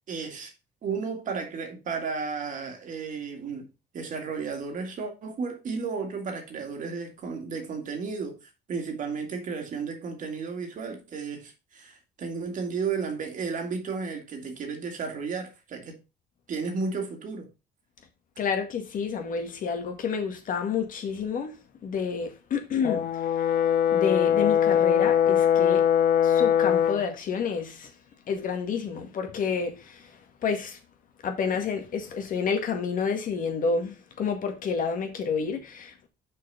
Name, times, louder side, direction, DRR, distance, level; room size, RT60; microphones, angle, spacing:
voice 1, 0.1-0.5 0.8-3.7 3.9-16.0 16.5-17.5, right 5 dB, 50° right, 2.2 m, -33 dB
voice 2, 18.4-21.5 21.8-23.0 23.9-25.8 26.2-27.9 28.3-30.1 30.4-30.8 31.2-36.1, left 6 dB, 55° left, 1.8 m, -29 dB
Brass instrument, 22.8-27.1, left 9 dB, 70° left, 0.9 m, -22 dB
6.0 x 4.8 x 5.5 m
cardioid pair, 110°, 17 cm